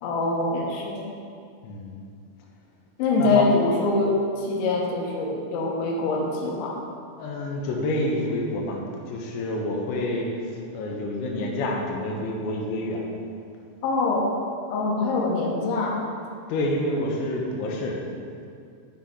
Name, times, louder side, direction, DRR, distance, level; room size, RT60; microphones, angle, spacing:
voice 1, 0.0-1.0 3.0-6.8 13.8-14.3 14.7-16.0, left 3 dB, 75° left, -3 dB, 3.3 m, -24 dB
voice 2, 1.6-2.0 3.2-3.4 7.2-8.8 9.1-10.3 10.7-13.0 16.5-18.0, left 1 dB, 90° left, -1 dB, 3.7 m, -28 dB
10.5 x 5.9 x 3.8 m, 2.3 s
omnidirectional pair, 5.9 m